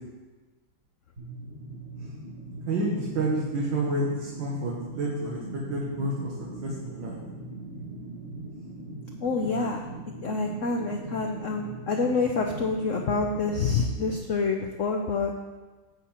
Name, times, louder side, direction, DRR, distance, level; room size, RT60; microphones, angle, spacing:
sound 1, 1.2-14.2, right 1 dB, 55° right, 3.6 m, -40 dB
voice 1, 2.7-5.4 5.7-6.3 6.6-7.2, right 2 dB, 85° right, -5 dB, 2.2 m, -29 dB
voice 2, 9.2-9.8 10.2-15.3, left 4 dB, 60° left, 2 dB, 0.9 m, -27 dB
10.0 x 7.7 x 4.4 m, 1.3 s
omnidirectional pair, 2.0 m